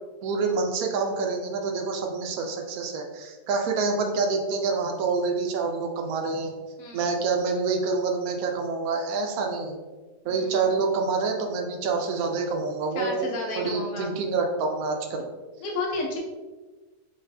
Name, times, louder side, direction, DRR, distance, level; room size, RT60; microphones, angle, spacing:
voice 1, 0.2-6.5 6.9-9.8 10.2-13.3 13.6-15.2, right 4 dB, 70° right, 3 dB, 1.0 m, -27 dB
voice 2, 10.2-10.6 13.0-14.1 15.6-16.2, left 2 dB, 55° left, -2 dB, 1.1 m, -32 dB
4.1 x 3.2 x 2.7 m, 1.2 s
omnidirectional pair, 1.7 m